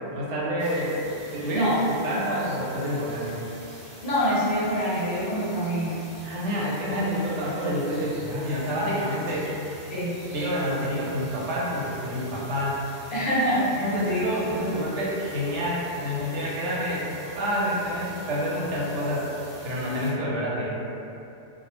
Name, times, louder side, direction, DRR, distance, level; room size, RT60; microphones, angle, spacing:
voice 1, 0.1-3.4 6.2-9.6 10.3-12.8 13.8-17.1 17.3-19.3 19.6-20.8, equal, 85° right, -6 dB, 0.9 m, -28 dB
sound 1, 0.6-20.1, equal, 60° right, 1.0 m, -45 dB
voice 2, 4.0-6.0 9.9-10.2 13.1-14.2, equal, 60° left, -8 dB, 0.8 m, -25 dB
2.3 x 2.0 x 3.0 m, 2.8 s
omnidirectional pair, 1.2 m